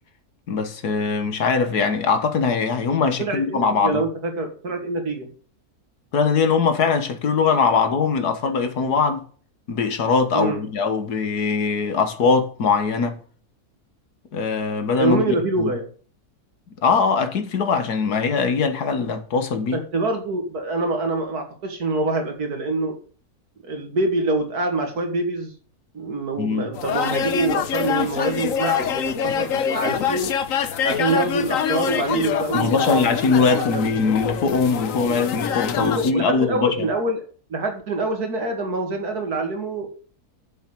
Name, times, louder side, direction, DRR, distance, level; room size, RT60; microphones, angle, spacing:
voice 1, 0.5-4.0 6.1-9.2 9.7-13.2 14.3-15.7 16.8-19.8 26.4-26.7 32.5-36.9, left 5 dB, 90° left, 2.0 m, -21 dB
voice 2, 3.2-5.3 10.3-10.6 15.0-15.9 19.7-23.0 23.6-25.5 25.9-30.3 30.8-33.9 35.8-37.2 37.5-39.9, right 2 dB, 80° right, 2.9 m, -25 dB
sound 1, 26.7-36.1, left 8 dB, 65° left, 1.2 m, -25 dB
7.7 x 7.3 x 7.2 m
omnidirectional pair, 1.6 m